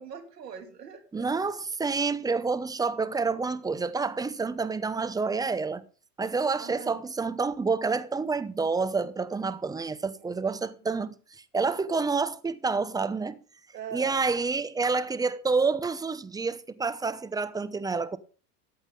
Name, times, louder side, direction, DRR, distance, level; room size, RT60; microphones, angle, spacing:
voice 1, 0.0-1.6 4.9-5.0 6.6-7.0 10.0-10.6 13.7-14.2, right 7 dB, 80° right, 3.0 m, -43 dB
voice 2, 1.1-5.8 6.2-11.1 11.5-13.4 13.9-18.2, right 4 dB, 10° right, 0.8 m, -28 dB
14.0 x 9.0 x 3.7 m
hypercardioid pair, 95°, 48 cm